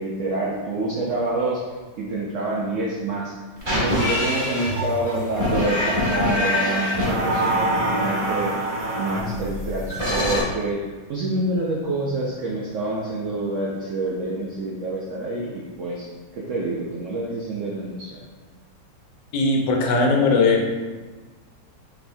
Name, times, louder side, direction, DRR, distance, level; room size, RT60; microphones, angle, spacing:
voice 1, 0.0-1.6 2.0-3.4 3.7-8.5 9.0-16.1 16.3-18.2, right 2 dB, 80° right, -4 dB, 0.6 m, -27 dB
sound 1, 3.6-10.4, equal, 20° right, 0.9 m, -24 dB
voice 2, 19.3-20.7, left 3 dB, 80° left, 1 dB, 1.3 m, -19 dB
4.3 x 3.3 x 2.6 m, 1.3 s
omnidirectional pair, 2.0 m